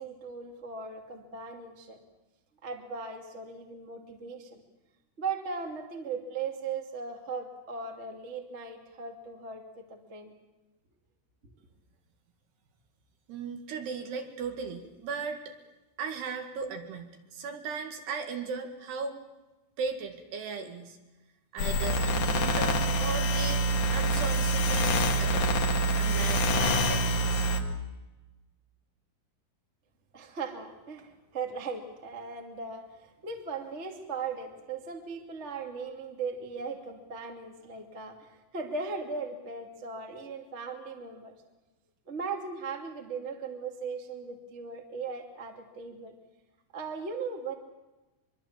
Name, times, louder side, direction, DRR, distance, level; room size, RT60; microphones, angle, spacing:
voice 1, 0.0-2.0 2.6-4.6 5.2-10.3 30.1-38.3 38.5-41.3 42.1-46.1 46.7-47.5, right 4 dB, 25° right, 2 dB, 1.6 m, -38 dB
voice 2, 13.3-15.5 16.0-19.2 19.8-21.0 21.5-25.7 26.0-27.5, right 5 dB, 65° right, 4 dB, 3.7 m, -37 dB
sound 1, 21.6-27.6, right 1 dB, 55° left, 2.4 m, -26 dB
24.5 x 23.5 x 7.3 m, 1.1 s
omnidirectional pair, 5.6 m